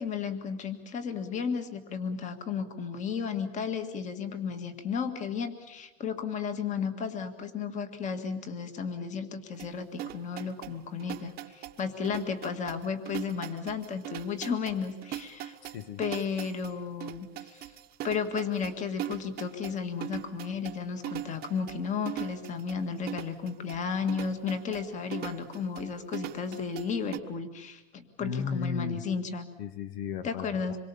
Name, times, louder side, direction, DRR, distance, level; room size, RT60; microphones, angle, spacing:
voice 1, 0.0-15.6 16.0-17.7 18.0-29.4 30.2-30.8, left 6 dB, 25° left, 9 dB, 1.8 m, -33 dB
sound 1, 9.6-27.2, right 12 dB, 30° right, 1.1 m, -41 dB
voice 2, 15.6-16.0 28.2-29.0 29.6-30.8, left 6 dB, 70° left, 12 dB, 1.7 m, -35 dB
26.5 x 23.0 x 7.0 m, 0.98 s
supercardioid pair, 165°, 31 cm